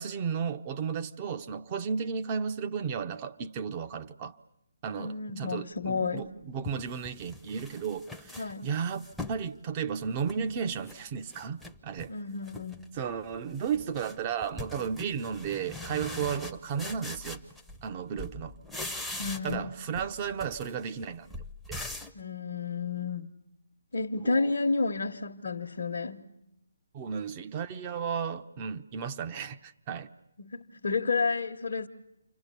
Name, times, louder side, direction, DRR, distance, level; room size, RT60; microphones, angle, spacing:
voice 1, 0.0-4.4 4.8-12.1 13.0-17.4 17.8-18.6 19.4-21.3 21.7-21.8 24.2-24.5 26.9-30.1, right 6 dB, 30° right, 0.9 m, -34 dB
voice 2, 4.9-6.3 8.4-8.7 12.1-12.9 19.2-19.7 22.1-23.3 23.9-26.3 30.4-31.9, left 4 dB, 65° left, 1.1 m, -31 dB
sound 1, 6.0-6.1 6.6-9.5 9.9-11.0 11.3-12.1 12.4-12.9 13.2-17.9 18.2-19.7 19.9-22.2, left 2 dB, ahead, 0.9 m, -42 dB
29.0 x 25.5 x 6.9 m
figure-of-eight pair, 145°, 0 cm